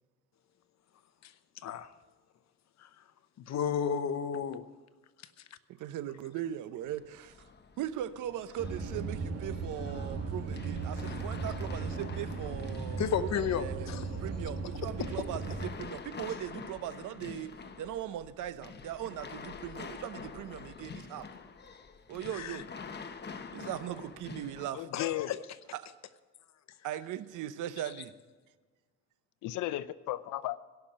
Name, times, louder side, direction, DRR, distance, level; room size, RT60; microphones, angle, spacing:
voice 1, 3.4-4.6 13.0-14.3 15.0-15.3 22.3-22.6 24.9-25.4, left 8 dB, 60° left, 0.9 m, -33 dB
voice 2, 5.7-7.4 7.8-13.9 14.2-21.3 22.1-22.6 23.5-24.9 25.7-25.8 26.8-28.1, right 11 dB, 85° right, 0.8 m, -39 dB
sound 1, 6.9-24.7, left 5 dB, 35° left, 1.0 m, -47 dB
sound 2, 8.6-15.7, right 4 dB, 50° right, 2.5 m, -37 dB
voice 3, 24.7-25.4 29.4-30.6, left 14 dB, 90° left, 0.7 m, -35 dB
17.0 x 6.0 x 8.6 m
cardioid pair, 90°, 30 cm